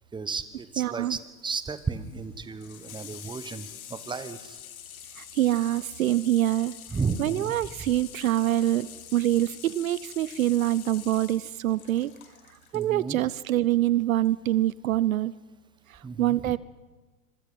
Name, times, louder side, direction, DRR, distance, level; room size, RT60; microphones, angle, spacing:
voice 1, 0.1-4.6 6.9-7.5 12.7-13.2 16.0-16.6, right 4 dB, 10° right, 13 dB, 1.2 m, -34 dB
voice 2, 0.8-1.2 5.2-6.7 7.2-12.1 12.7-15.3 16.2-16.6, right 13 dB, 65° right, 20 dB, 0.7 m, -25 dB
Water tap faucet / Sink (filling or washing), 1.0-12.9 14.2-14.3, left 9 dB, 70° left, 2.4 m, -46 dB
26.0 x 23.5 x 5.7 m, 1.3 s
figure-of-eight pair, 100°, 45 cm